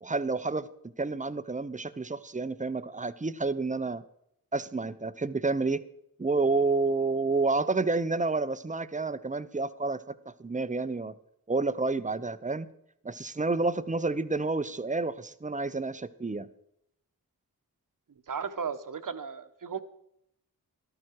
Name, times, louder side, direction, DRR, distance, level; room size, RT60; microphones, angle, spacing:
voice 1, 0.0-0.7 1.0-4.0 4.5-5.8 6.2-11.1 11.5-12.7 13.0-16.5, right 3 dB, 20° right, 14 dB, 0.7 m, -29 dB
voice 2, 18.3-19.8, right 6 dB, 55° right, 10 dB, 1.2 m, -35 dB
14.0 x 12.0 x 4.7 m, 0.75 s
cardioid pair, 50°, 38 cm